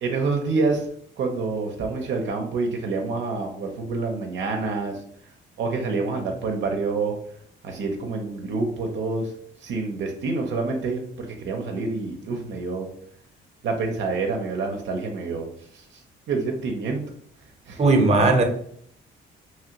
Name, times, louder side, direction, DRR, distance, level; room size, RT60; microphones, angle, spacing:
voice 1, 0.0-0.9 1.2-5.0 5.6-7.1 7.6-9.3 9.6-12.9 13.6-16.0 16.3-17.0 17.7-17.8 18.2-18.3, right 3 dB, 70° right, 2 dB, 0.6 m, -27 dB
voice 2, 17.8-18.4, right 3 dB, 35° right, 4 dB, 0.7 m, -17 dB
2.9 x 2.4 x 2.8 m, 0.65 s
cardioid pair, 90°, 20 cm